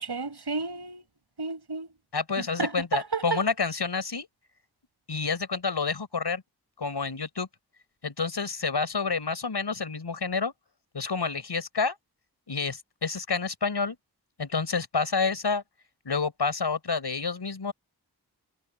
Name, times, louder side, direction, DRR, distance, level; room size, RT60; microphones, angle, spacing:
voice 1, 0.1-1.1 1.4-1.9 2.6-3.5, right 3 dB, 75° right, 7.1 m, -31 dB
voice 2, 2.1-4.3 5.1-6.4 6.8-7.5 8.0-10.5 10.9-12.0 12.5-14.0 14.4-15.6 16.1-17.7, left 4 dB, 85° left, 5.7 m, -29 dB
wide cardioid pair, 60°, 40 cm